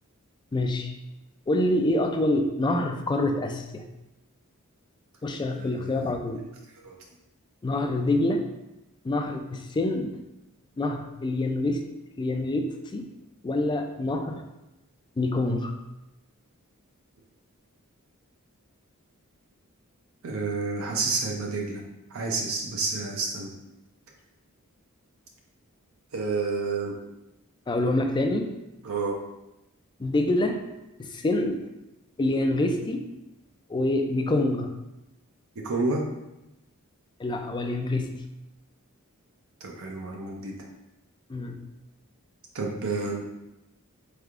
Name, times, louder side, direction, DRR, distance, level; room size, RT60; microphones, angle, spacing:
voice 1, 0.5-0.9 1.5-3.8 5.2-6.4 7.6-8.5 9.0-10.2 10.8-11.8 12.2-13.1 13.4-14.4 15.2-15.7 27.7-28.5 30.0-30.6 31.0-31.7 32.2-33.1 33.7-34.7 37.2-38.1 41.3-41.6, left 1 dB, 20° left, 5 dB, 0.3 m, -26 dB
voice 2, 5.6-6.0 6.8-7.0 20.2-21.8 22.1-23.5 26.1-26.9 28.8-29.2 35.6-36.0 39.6-40.5 42.5-43.3, right 3 dB, 65° right, 0 dB, 0.6 m, -29 dB
4.3 x 3.3 x 2.4 m, 0.93 s
head